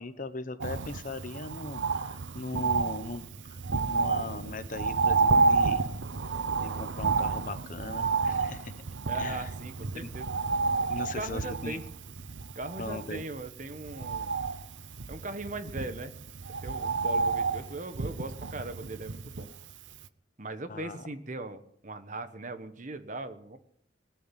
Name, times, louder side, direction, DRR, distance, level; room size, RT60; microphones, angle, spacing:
voice 1, 0.0-3.6 3.9-5.9 6.6-8.7 9.2-9.5 10.0-10.1 10.9-11.8 12.8-13.2 20.7-21.0, left 3 dB, 40° left, 12 dB, 1.0 m, -39 dB
Bird, 0.6-19.7 20.0-20.1, right 4 dB, 70° right, 0.8 m, -30 dB
voice 2, 9.1-10.3 11.1-11.8 12.5-14.4 15.1-16.1 16.6-19.5 20.4-23.6, right 2 dB, 40° right, 10 dB, 1.2 m, -39 dB
20.5 x 7.0 x 9.9 m, 0.67 s
head